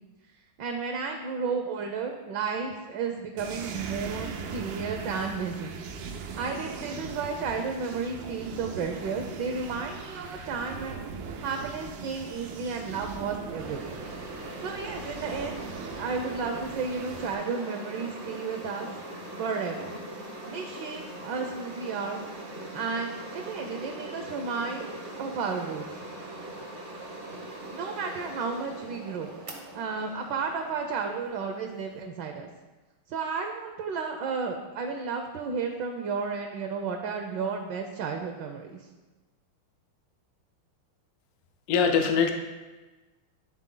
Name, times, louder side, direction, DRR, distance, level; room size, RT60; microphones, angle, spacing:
voice 1, 0.6-5.8 6.3-11.0 11.4-13.9 14.6-15.6 15.9-18.9 19.4-20.0 20.5-22.2 22.7-26.0 27.7-29.3 29.7-32.5 33.1-38.9, right 5 dB, 70° right, 4 dB, 1.1 m, -33 dB
sound 1, 3.4-17.4, right 5 dB, 90° right, 1.6 m, -40 dB
sound 2, 13.6-32.0, right 1 dB, 55° right, 0.5 m, -41 dB
voice 2, 41.7-42.3, left 6 dB, 85° left, 5 dB, 0.8 m, -22 dB
10.5 x 3.7 x 3.8 m, 1.2 s
omnidirectional pair, 2.4 m